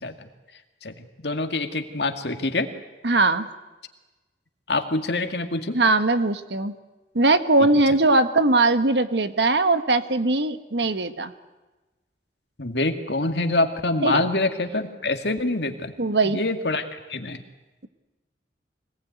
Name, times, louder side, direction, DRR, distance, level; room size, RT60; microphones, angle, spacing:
voice 1, 1.2-2.7 4.7-5.8 12.6-15.9 16.2-17.4, left 2 dB, 70° left, 6 dB, 2.2 m, -25 dB
voice 2, 3.0-3.5 5.7-6.7 7.1-11.3 14.0-14.3 16.0-16.4, right 2 dB, 75° right, 10 dB, 1.5 m, -20 dB
25.0 x 19.0 x 9.4 m, 1.1 s
head